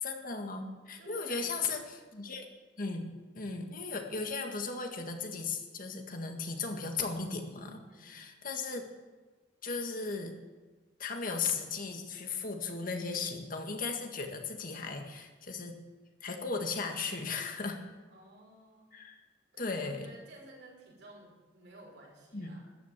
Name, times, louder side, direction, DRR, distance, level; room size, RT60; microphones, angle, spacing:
voice 1, 0.0-2.5 2.8-8.9 9.6-10.4 11.0-15.8 16.2-17.8 18.9-19.2 19.6-20.1 22.3-22.6, left 4 dB, 55° left, 4 dB, 1.8 m, -36 dB
voice 2, 1.0-1.9 7.9-8.2 18.1-19.0 19.5-22.8, right 1 dB, 85° right, -3 dB, 5.9 m, -54 dB
13.5 x 9.7 x 8.2 m, 1.2 s
head